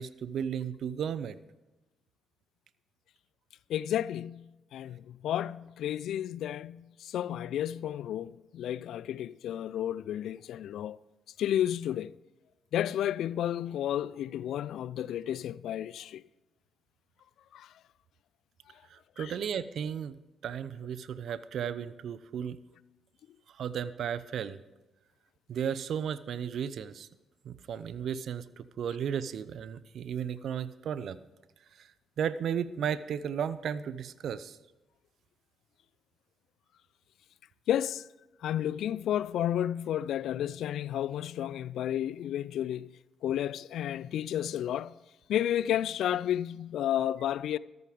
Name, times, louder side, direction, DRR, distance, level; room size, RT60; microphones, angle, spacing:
voice 1, 0.0-1.4 18.9-20.2 20.4-22.6 23.5-24.6 25.5-27.1 27.4-31.2 31.8-31.9 32.2-34.6, right 8 dB, 65° right, 0.6 m, -34 dB
voice 2, 3.7-11.0 11.4-12.1 12.7-16.2 17.5-17.7 19.2-19.3 37.7-38.1 38.4-42.9 43.2-45.0 45.3-47.6, left 11 dB, 70° left, 0.3 m, -32 dB
14.0 x 11.0 x 5.1 m
hypercardioid pair, 45°, 0 cm